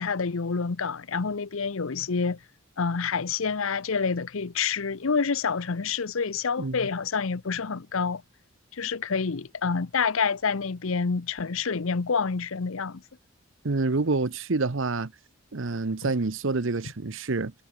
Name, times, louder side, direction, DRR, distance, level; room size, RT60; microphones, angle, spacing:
voice 1, 0.0-2.4 2.8-8.2 8.7-13.0, left 5 dB, 70° left, 0.7 m, -28 dB
voice 2, 6.6-6.9 13.6-15.1 15.5-17.5, right 3 dB, 60° right, 0.8 m, -27 dB
head